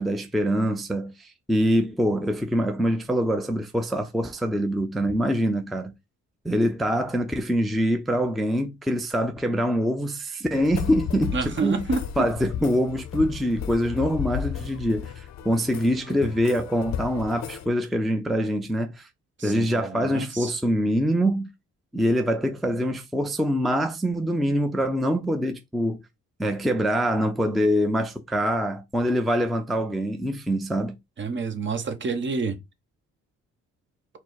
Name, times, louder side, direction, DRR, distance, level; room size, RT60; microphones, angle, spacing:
voice 1, 0.0-5.9 6.4-11.9 12.2-19.1 19.4-21.5 21.9-26.0 26.4-31.0, equal, ahead, 0.5 m, -24 dB
sound 1, 10.5-17.7, left 9 dB, 60° left, 0.5 m, -34 dB
voice 2, 11.3-12.3 19.4-20.5 31.2-32.6, right 4 dB, 40° right, 0.9 m, -28 dB
4.6 x 2.0 x 4.0 m
cardioid pair, 90°, 30 cm